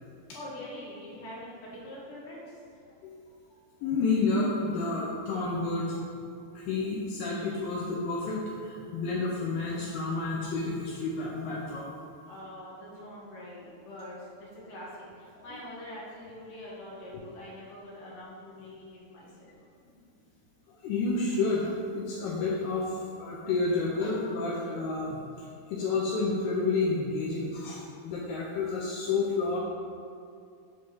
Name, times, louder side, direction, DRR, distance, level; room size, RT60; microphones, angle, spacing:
voice 1, 0.3-2.6 3.5-3.8 12.2-19.5, left 1 dB, 60° left, -6 dB, 1.4 m, -44 dB
voice 2, 3.8-6.3 6.5-11.9 20.7-29.6, left 3 dB, 80° left, -4 dB, 2.1 m, -30 dB
7.0 x 3.2 x 5.9 m, 2.5 s
omnidirectional pair, 4.7 m